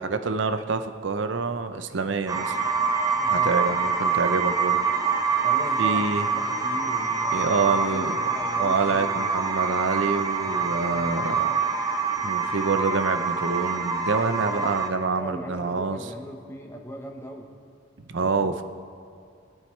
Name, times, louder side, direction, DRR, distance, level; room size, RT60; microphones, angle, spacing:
voice 1, 0.0-2.6 3.3-4.8 5.8-6.3 7.3-8.2 8.6-11.5 12.2-16.1 18.0-18.6, right 4 dB, 70° right, 8 dB, 0.7 m, -27 dB
sound 1, 2.3-14.9, right 5 dB, 20° right, 0.7 m, -25 dB
voice 2, 3.2-3.8 5.4-9.3 10.4-11.4 14.4-14.9 15.1-17.5, equal, 15° left, 2 dB, 1.0 m, -39 dB
19.5 x 8.9 x 3.2 m, 2.3 s
head